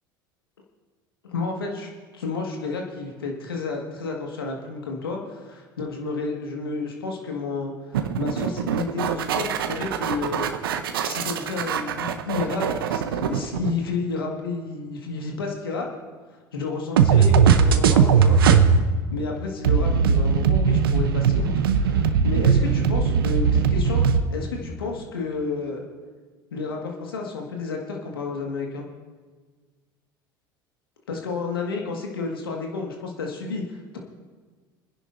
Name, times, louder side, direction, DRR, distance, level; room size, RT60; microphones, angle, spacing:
voice 1, 1.2-10.5 11.0-15.9 16.5-18.4 19.1-24.0 24.3-25.8 26.5-28.8 31.1-33.7, left 4 dB, 90° left, 1 dB, 1.8 m, -31 dB
sound 1, 7.9-13.9 17.0-18.8 19.6-24.2, right 6 dB, 80° right, 0.8 m, -20 dB
27.0 x 10.5 x 2.6 m, 1.4 s
hypercardioid pair, 75°, 12 cm